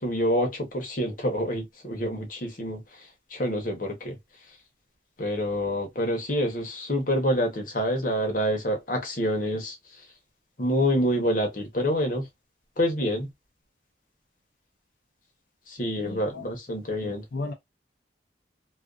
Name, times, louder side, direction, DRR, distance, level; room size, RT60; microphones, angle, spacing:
voice 1, 0.0-4.2 5.2-9.8 10.6-12.3 12.8-13.3 15.7-17.2, equal, 45° left, 0.9 m, -27 dB
voice 2, 16.0-16.4 17.0-17.5, left 3 dB, 70° left, 0.5 m, -35 dB
2.4 x 2.4 x 2.4 m
head